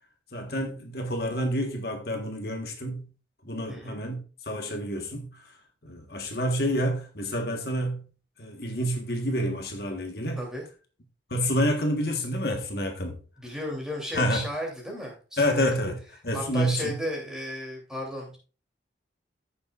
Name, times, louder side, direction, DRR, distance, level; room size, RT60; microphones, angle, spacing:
voice 1, 0.3-3.0 3.4-4.2 4.5-5.4 5.8-8.0 8.4-10.4 11.3-13.2 14.1-14.4 15.4-16.0 16.2-16.9, equal, 55° left, 1.5 m, -28 dB
voice 2, 3.7-4.0 10.3-10.6 13.4-15.7 16.3-18.4, equal, 5° right, 3.1 m, -34 dB
14.5 x 6.8 x 2.5 m
head